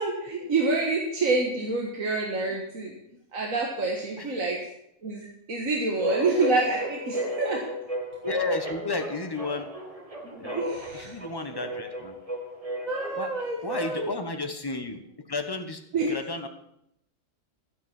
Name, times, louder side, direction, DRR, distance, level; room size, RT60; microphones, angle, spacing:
voice 1, 0.0-3.0 3.3-4.6 5.0-7.6 10.2-11.1 12.9-14.1 15.9-16.1, right 3 dB, 80° right, -1 dB, 2.0 m, -27 dB
sound 1, 6.0-14.2, right 1 dB, 25° right, 1.9 m, -34 dB
voice 2, 8.2-9.7 10.4-10.7 10.9-12.1 13.2-13.3 13.6-15.8 16.1-16.5, left 3 dB, 20° left, 6 dB, 1.1 m, -32 dB
12.0 x 9.7 x 6.0 m, 0.77 s
omnidirectional pair, 1.4 m